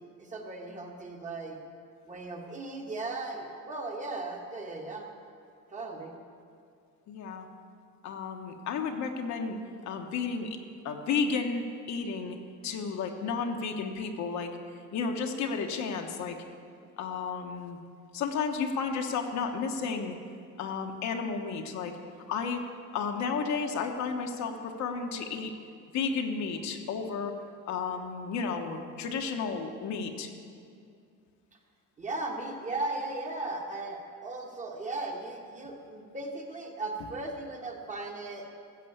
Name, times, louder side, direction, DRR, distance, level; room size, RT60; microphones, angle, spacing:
voice 1, 0.0-1.6 2.1-5.1 5.7-6.1 32.0-38.5, right 2 dB, 20° right, 1 dB, 1.3 m, -37 dB
voice 2, 7.1-7.5 8.0-10.6 10.8-12.4 12.6-14.6 14.9-16.4 17.0-17.8 18.1-20.2 20.6-22.0 22.3-22.6 22.9-25.5 25.9-27.3 27.7-30.3, left 5 dB, 60° left, 4 dB, 1.2 m, -32 dB
14.5 x 7.6 x 8.6 m, 2.4 s
cardioid pair, 170°, 32 cm